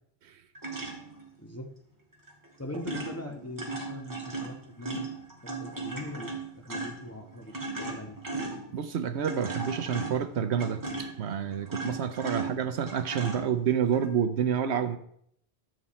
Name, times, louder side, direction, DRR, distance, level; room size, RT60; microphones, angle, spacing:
sound 1, 0.6-1.3 2.3-2.5 2.7-14.1, right 3 dB, 15° right, 1.9 m, -37 dB
voice 1, 1.4-1.7 2.6-5.1 5.4-6.3 6.6-8.2 12.3-12.5, equal, 15° left, 2 dB, 1.2 m, -41 dB
voice 2, 8.7-15.0, right 8 dB, 75° right, 10 dB, 1.0 m, -29 dB
12.0 x 7.9 x 4.3 m, 0.70 s
omnidirectional pair, 1.1 m